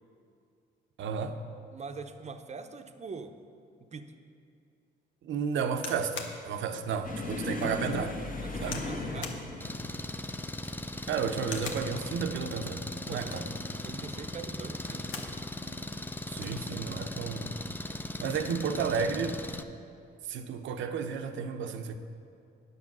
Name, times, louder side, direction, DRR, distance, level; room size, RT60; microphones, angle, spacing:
voice 1, 1.0-1.4 5.2-8.2 8.6-8.8 11.0-13.5 16.3-17.6 18.2-19.4 20.3-22.0, right 6 dB, 75° right, 8 dB, 0.7 m, -32 dB
voice 2, 1.7-3.4 3.8-4.2 8.4-9.4 13.1-13.4 13.8-15.1, right 5 dB, 35° right, 7 dB, 0.7 m, -43 dB
Airsoft Gun cock, 5.8-6.4 7.0-7.1 7.5-7.7 8.6-8.9 9.2-9.4 10.5-10.9 11.4-11.9 13.1-13.6 14.7-15.4 15.8-15.9 16.1-16.6 17.4-17.7, left 5 dB, 75° left, 1.1 m, -42 dB
sound 1, 7.0-14.3 14.6-14.9 15.3-15.4 16.3-16.8 17.8-18.0 19.4-19.5, left 2 dB, 45° left, 1.4 m, -39 dB
Engine, 9.6-19.6, left 2 dB, 10° left, 0.5 m, -38 dB
9.6 x 6.8 x 6.1 m, 2.5 s
cardioid pair, 90°, 20 cm